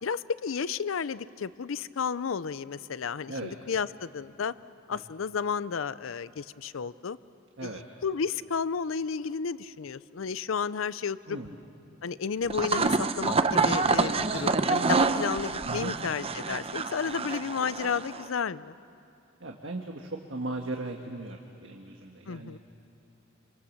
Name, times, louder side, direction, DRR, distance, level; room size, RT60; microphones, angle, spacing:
voice 1, 0.0-4.5 4.9-7.2 7.6-11.4 12.0-18.7 22.3-22.6, left 6 dB, 90° left, 17 dB, 0.5 m, -32 dB
voice 2, 11.3-11.6 15.6-15.9 19.4-22.6, right 2 dB, 70° right, 2 dB, 1.6 m, -37 dB
sound 1, 12.4-18.3, right 4 dB, 30° right, 0.7 m, -27 dB
27.0 x 24.5 x 7.3 m, 2.7 s
head